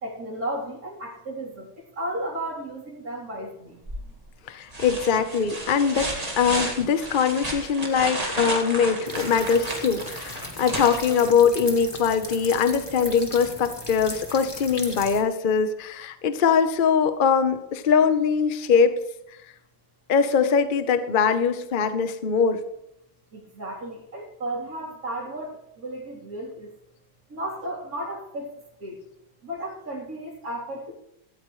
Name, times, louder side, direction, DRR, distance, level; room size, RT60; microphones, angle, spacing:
voice 1, 0.0-1.7 2.0-3.8 23.3-26.7 27.3-28.5 28.8-29.0 29.4-30.9, right 1 dB, 45° right, -4 dB, 4.1 m, -34 dB
sound 1, 3.9-4.2 4.7-11.7 13.4-13.5, right 1 dB, 20° right, 2.1 m, -32 dB
voice 2, 4.5-19.0 20.1-22.6, left 6 dB, 40° left, 9 dB, 0.7 m, -22 dB
sound 2, 9.0-15.2, left 1 dB, 15° left, 1.4 m, -38 dB
17.0 x 14.0 x 3.2 m, 0.81 s
omnidirectional pair, 2.2 m